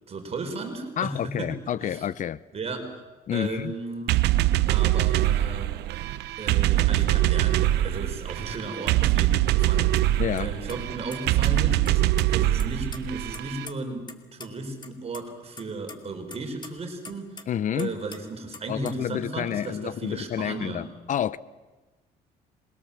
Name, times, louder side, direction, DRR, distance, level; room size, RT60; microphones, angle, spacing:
voice 1, 0.1-2.1 2.5-3.0 3.3-4.2 4.7-5.7 6.4-20.9, right 3 dB, 35° right, 5.0 m, -35 dB
voice 2, 1.0-2.4 3.3-3.7 10.2-10.5 17.5-18.0 18.7-21.4, left 10 dB, 50° left, 0.7 m, -29 dB
sound 1, 4.1-13.6, right 14 dB, 80° right, 0.9 m, -23 dB
sound 2, 9.6-9.7 10.0-10.1 10.4-10.5 10.7-11.5 11.8-12.3 12.6-14.2 14.4-14.5 14.8-15.2 15.6-17.5 17.8-18.2 18.5-19.0, left 4 dB, 25° left, 2.5 m, -43 dB
27.0 x 22.5 x 7.3 m
cardioid pair, 110°, 17 cm